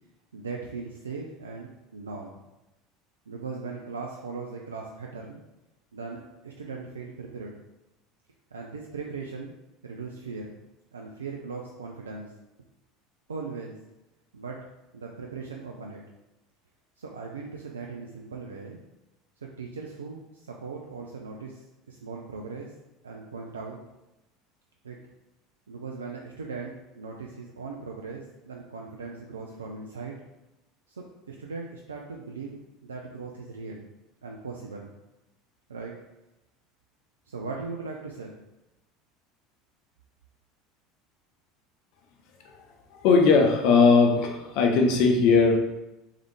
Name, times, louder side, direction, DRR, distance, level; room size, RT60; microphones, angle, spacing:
voice 1, 0.3-2.4 3.3-5.4 5.9-7.6 8.5-9.5 9.8-10.6 10.9-12.3 13.3-13.8 14.3-14.6 14.9-16.0 17.0-18.8 19.6-21.6 21.9-22.7 23.0-23.8 24.8-25.0 25.7-30.2 30.9-33.9 34.2-34.9 35.7-35.9 37.3-38.3, right 4 dB, 80° right, 0 dB, 0.4 m, -39 dB
voice 2, 42.9-45.6, left 4 dB, 55° left, 2 dB, 0.7 m, -19 dB
3.6 x 3.3 x 3.2 m, 0.97 s
figure-of-eight pair, 70°, 0 cm